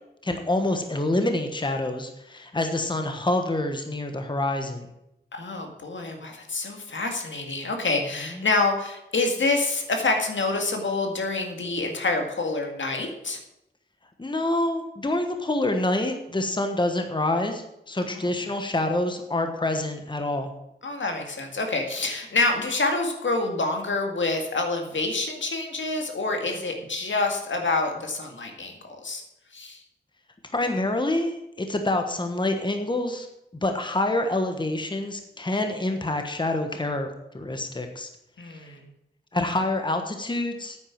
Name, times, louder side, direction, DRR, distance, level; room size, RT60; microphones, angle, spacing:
voice 1, 0.2-4.9 8.3-8.5 14.2-20.5 30.5-33.3 33.6-37.1 37.3-38.1 38.5-38.7 39.3-40.8, left 2 dB, 25° left, 5 dB, 1.3 m, -27 dB
voice 2, 5.3-13.4 18.0-18.2 20.8-29.2 29.5-29.8 38.4-38.9, left 3 dB, 75° left, 3 dB, 2.0 m, -27 dB
9.4 x 9.0 x 7.3 m, 0.85 s
wide cardioid pair, 105°, 19 cm